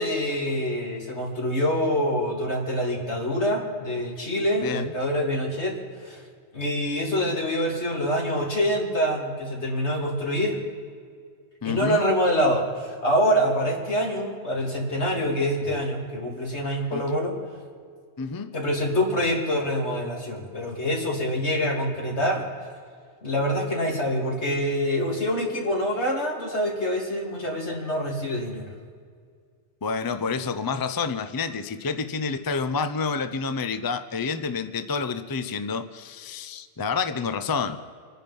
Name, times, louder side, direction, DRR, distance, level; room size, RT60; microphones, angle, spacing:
voice 1, 0.0-5.8 6.0-6.2 6.5-10.6 11.6-17.3 18.5-22.5 23.2-28.6, equal, 80° left, -1 dB, 3.3 m, -25 dB
voice 2, 4.6-4.9 11.6-12.0 16.9-17.2 18.2-18.5 29.8-37.8, left 5 dB, 25° left, 10 dB, 0.5 m, -29 dB
26.5 x 10.0 x 5.4 m, 2.1 s
omnidirectional pair, 1.1 m